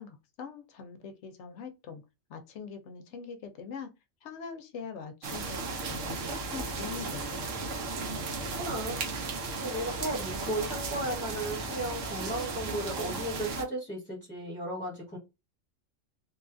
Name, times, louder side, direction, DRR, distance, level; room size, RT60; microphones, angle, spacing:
voice 1, 0.0-2.0 2.3-3.9 4.2-7.6, left 6 dB, 70° left, 0.8 m, -43 dB
sound 1, 5.2-13.6, right 3 dB, 75° right, 1.0 m, -35 dB
voice 2, 8.6-9.0 9.6-15.2, right 1 dB, 5° left, 1.0 m, -35 dB
2.9 x 2.3 x 2.5 m
omnidirectional pair, 1.3 m